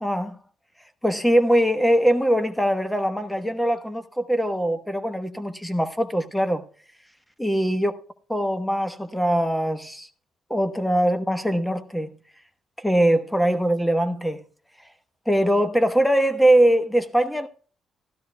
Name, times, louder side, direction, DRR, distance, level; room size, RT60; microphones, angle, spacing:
voice 1, 0.0-0.3 1.0-6.6 7.4-7.9 8.3-10.1 10.5-12.1 12.8-14.4 15.3-17.5, right 1 dB, 5° left, 1.1 m, -22 dB
16.0 x 12.5 x 2.3 m
cardioid pair, 90°, 0 cm